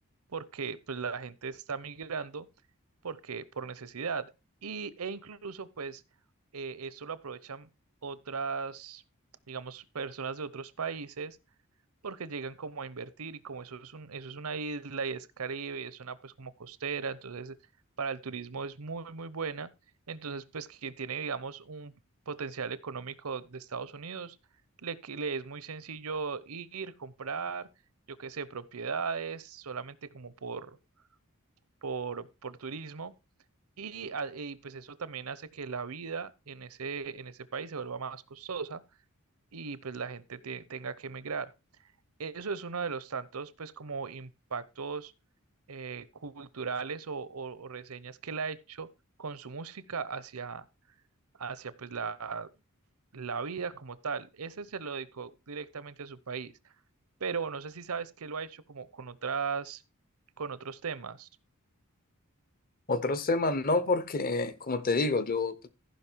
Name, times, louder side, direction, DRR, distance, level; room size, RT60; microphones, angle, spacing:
voice 1, 0.3-2.5 3.0-4.3 4.6-6.0 6.5-7.7 8.0-9.0 9.5-11.4 12.0-17.6 18.0-19.7 20.1-21.9 22.3-24.4 24.8-27.7 28.1-30.8 31.8-33.1 33.8-38.8 39.5-41.5 42.2-45.1 45.7-48.9 49.2-50.7 51.4-52.5 53.1-56.5 57.2-59.8 60.4-61.3, right 5 dB, 85° right, 0.8 m, -37 dB
voice 2, 62.9-65.7, left 3 dB, 40° left, 0.9 m, -28 dB
14.5 x 5.5 x 4.6 m
head